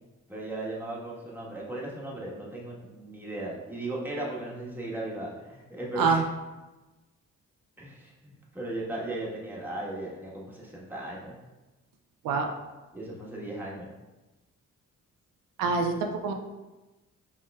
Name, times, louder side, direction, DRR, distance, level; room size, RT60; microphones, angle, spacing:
voice 1, 0.3-6.2 7.8-11.4 12.9-13.9, right 2 dB, 5° right, -5 dB, 1.3 m, -37 dB
voice 2, 15.6-16.3, right 4 dB, 85° right, 4 dB, 0.5 m, -25 dB
5.7 x 3.2 x 2.3 m, 1.1 s
cardioid pair, 70°, 32 cm